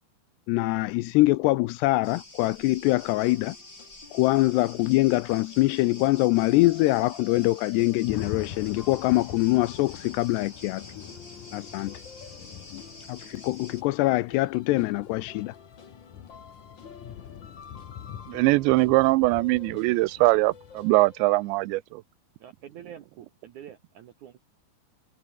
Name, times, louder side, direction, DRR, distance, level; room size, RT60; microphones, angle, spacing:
voice 1, 0.5-3.6 4.1-10.8 11.5-12.0 12.7-12.8 13.1-15.5, left 19 dB, 80° left, 2.6 m, -24 dB
sound 1, 2.0-13.8, left 2 dB, 20° left, 7.3 m, -48 dB
sound 2, 2.9-21.6, left 6 dB, 35° left, 2.0 m, -51 dB
sound 3, 6.4-20.8, left 10 dB, 55° left, 2.9 m, -44 dB
voice 2, 18.3-22.0, right 21 dB, 85° right, 2.9 m, -22 dB
voice 3, 22.4-24.4, right 10 dB, 70° right, 1.9 m, -46 dB
omnidirectional pair, 5.2 m